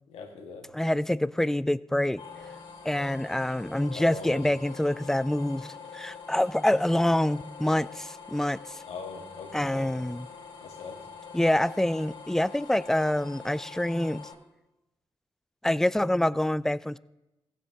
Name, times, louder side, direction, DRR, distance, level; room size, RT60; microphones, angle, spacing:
voice 1, 0.1-0.8 3.9-4.6 8.8-9.9 10.6-11.1, left 4 dB, 75° left, 1.8 m, -41 dB
voice 2, 0.7-2.2 2.8-8.8 9.5-10.3 11.3-14.3 15.6-17.0, left 1 dB, 5° left, 0.4 m, -26 dB
sound 1, 2.2-14.3, left 6 dB, 60° left, 2.9 m, -45 dB
16.0 x 7.4 x 3.6 m
supercardioid pair, 45°, 11 cm